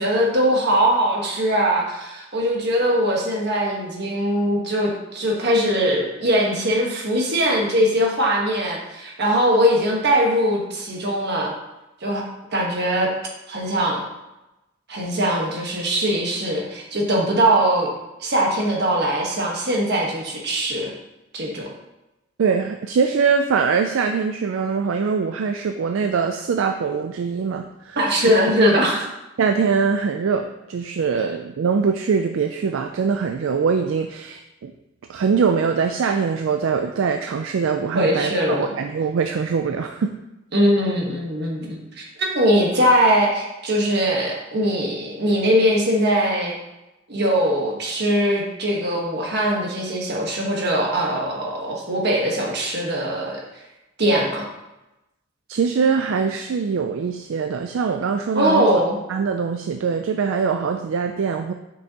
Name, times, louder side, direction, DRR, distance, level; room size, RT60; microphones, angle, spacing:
voice 1, 0.0-11.5 12.0-12.2 12.5-13.1 13.5-14.0 14.9-17.9 18.2-20.9 21.3-21.7 28.0-29.1 37.9-38.7 40.5-46.5 47.1-53.4 54.0-54.5 58.3-59.0, equal, 55° right, -1 dB, 1.4 m, -21 dB
voice 2, 22.4-28.0 29.4-34.7 35.1-40.2 55.5-58.7 59.1-61.5, right 5 dB, 75° right, 6 dB, 0.4 m, -22 dB
6.3 x 5.4 x 2.9 m, 0.96 s
head